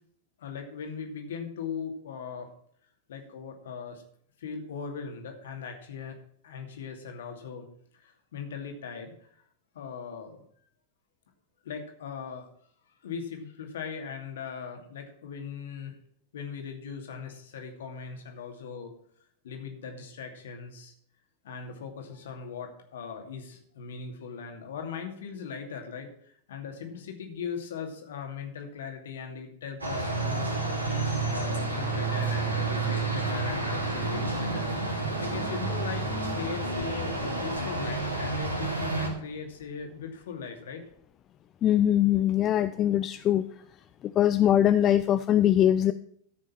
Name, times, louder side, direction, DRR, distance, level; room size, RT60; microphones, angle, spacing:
voice 1, 0.4-2.5 3.1-4.0 4.4-6.2 6.4-7.7 7.9-9.1 9.7-10.4 11.6-12.5 13.0-15.9 16.3-18.9 19.4-20.9 21.4-30.5 31.3-36.1 36.3-40.8, left 6 dB, 60° left, 4 dB, 2.4 m, -39 dB
sound 1, 29.8-39.1, right 3 dB, 80° right, 3.1 m, -30 dB
voice 2, 41.6-43.5 44.2-45.9, left 11 dB, 30° left, 11 dB, 0.5 m, -22 dB
14.0 x 6.3 x 5.9 m, 0.64 s
figure-of-eight pair, 90°, 0 cm